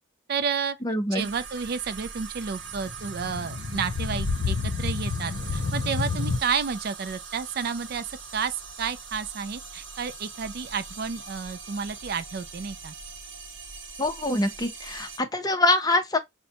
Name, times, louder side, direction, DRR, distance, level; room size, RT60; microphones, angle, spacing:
voice 1, 0.3-0.8 1.1-12.9, right 6 dB, 50° right, 0.4 m, -31 dB
voice 2, 0.8-1.3 14.0-16.2, left 2 dB, 20° left, 0.6 m, -24 dB
sound 1, 1.2-15.2, right 5 dB, 75° right, 0.9 m, -41 dB
sound 2, 2.7-6.4, left 4 dB, 60° left, 0.6 m, -29 dB
5.4 x 2.1 x 2.7 m
head